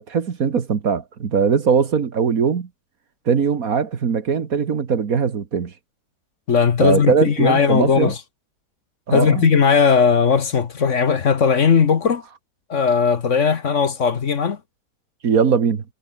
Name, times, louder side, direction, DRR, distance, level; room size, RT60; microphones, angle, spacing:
voice 1, 0.0-2.7 3.3-5.7 6.8-8.1 9.1-9.5 15.2-15.8, right 6 dB, 60° right, 2.0 m, -20 dB
voice 2, 6.5-8.2 9.1-12.2 12.7-14.6, left 6 dB, 50° left, 1.4 m, -17 dB
omnidirectional pair, 1.8 m